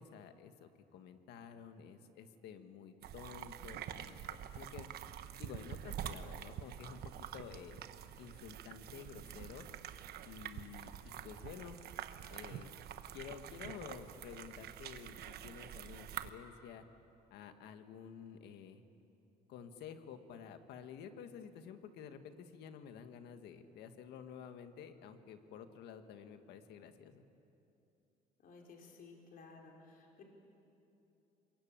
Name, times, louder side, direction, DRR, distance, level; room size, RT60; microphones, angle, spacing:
voice 1, 0.0-4.9 5.4-7.8 8.2-9.7 10.2-11.8 12.3-12.7 13.1-16.9 17.3-18.8 19.5-27.3, left 7 dB, 80° left, 8 dB, 1.7 m, -51 dB
sound 1, 3.0-16.3, right 10 dB, 70° right, 1.2 m, -47 dB
voice 2, 28.4-30.2, left 4 dB, 60° left, 0 dB, 4.8 m, -56 dB
26.5 x 22.5 x 8.9 m, 2.9 s
cardioid pair, 110°, 17 cm